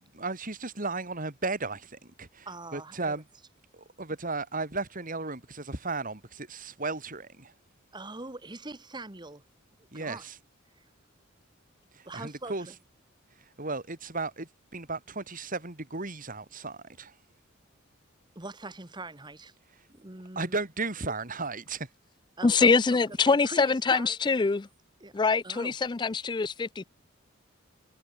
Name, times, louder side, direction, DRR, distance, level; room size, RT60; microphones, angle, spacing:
voice 1, 0.1-3.2 3.7-7.5 9.9-10.3 12.0-12.7 13.6-17.1 20.3-21.9, right 3 dB, 40° right, 3.1 m, -35 dB
voice 2, 2.5-3.2 7.9-9.4 9.9-10.3 10.8-10.9 12.1-12.8 18.4-19.5 19.9-20.6 22.4-23.0 23.2-24.2 25.0-25.1 25.4-25.8, right 2 dB, 20° right, 1.8 m, -42 dB
voice 3, 22.4-24.7 25.1-26.9, left 4 dB, 20° left, 0.3 m, -24 dB
head